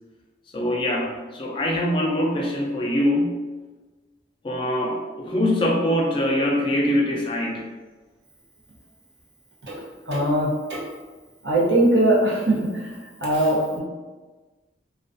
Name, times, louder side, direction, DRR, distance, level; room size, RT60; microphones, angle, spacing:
voice 1, 0.5-3.3 4.4-7.6, left 1 dB, 30° left, -1 dB, 0.3 m, -23 dB
voice 2, 10.1-10.8 11.4-12.6 13.2-13.8, right 1 dB, 75° right, -6 dB, 0.8 m, -20 dB
2.3 x 2.3 x 2.5 m, 1.3 s
head